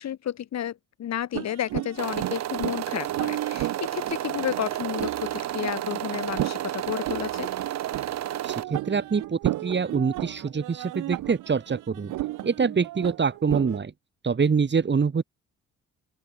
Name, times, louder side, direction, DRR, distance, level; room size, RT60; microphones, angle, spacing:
voice 1, 0.0-7.5, left 10 dB, 60° left, 1.9 m, -32 dB
sound 1, 1.3-13.8, right 16 dB, 85° right, 1.9 m, -34 dB
sound 2, 2.0-8.6, right 12 dB, 65° right, 1.0 m, -31 dB
voice 2, 8.4-12.1 12.4-13.9 14.2-15.2, right 5 dB, 35° right, 5.2 m, -25 dB
open air
cardioid pair, 90°, 30 cm